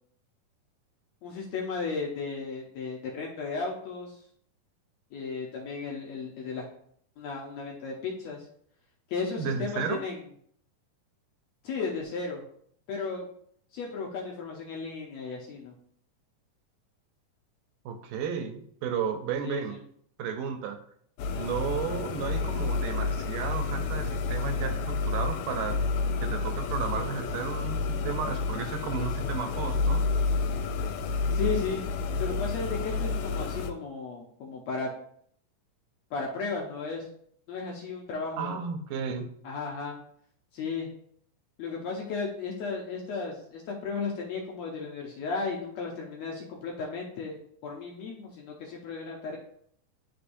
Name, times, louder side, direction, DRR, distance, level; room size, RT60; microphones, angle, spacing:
voice 1, 1.2-4.2 5.1-6.7 7.2-8.5 9.1-10.2 11.6-12.4 12.9-13.3 13.7-15.7 19.4-19.8 31.3-31.8 32.2-34.9 36.1-37.0 37.5-38.6 39.4-40.0 40.5-40.9 41.6-47.4 47.6-49.4, left 4 dB, 70° left, -1 dB, 1.7 m, -34 dB
voice 2, 9.4-10.0 17.9-19.8 20.2-20.8 21.4-25.8 26.2-30.0 38.4-39.3, right 6 dB, 80° right, 7 dB, 2.2 m, -33 dB
sound 1, 21.2-33.7, left 4 dB, 85° left, 2.3 m, -30 dB
11.0 x 3.9 x 2.6 m, 0.64 s
omnidirectional pair, 3.9 m